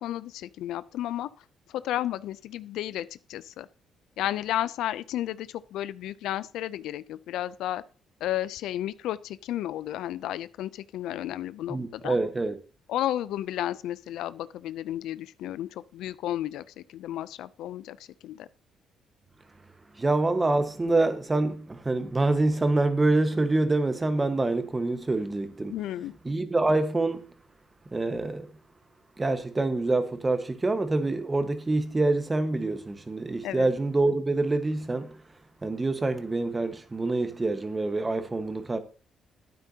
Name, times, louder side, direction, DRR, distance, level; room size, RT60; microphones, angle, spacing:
voice 1, 0.0-3.7 4.2-7.8 8.2-12.2 12.9-18.5 25.7-26.1 33.4-33.7, left 13 dB, 85° left, 0.4 m, -33 dB
voice 2, 11.7-12.5 20.0-25.7 26.2-27.3 27.9-28.5 29.2-35.2 35.6-38.8, right 2 dB, 20° right, 1.3 m, -26 dB
12.0 x 9.0 x 2.8 m
cardioid pair, 90°, 0 cm